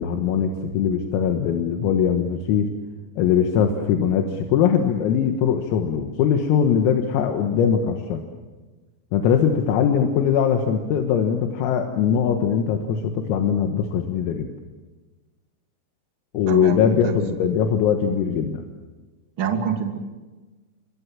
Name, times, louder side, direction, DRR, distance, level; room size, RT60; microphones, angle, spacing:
voice 1, 0.0-2.7 3.2-8.2 9.1-14.5 16.3-18.6, left 8 dB, 85° left, 4 dB, 4.2 m, -21 dB
voice 2, 16.5-17.2 19.4-20.0, right 7 dB, 35° right, 3 dB, 2.4 m, -26 dB
27.0 x 25.0 x 7.3 m, 1.2 s
omnidirectional pair, 5.9 m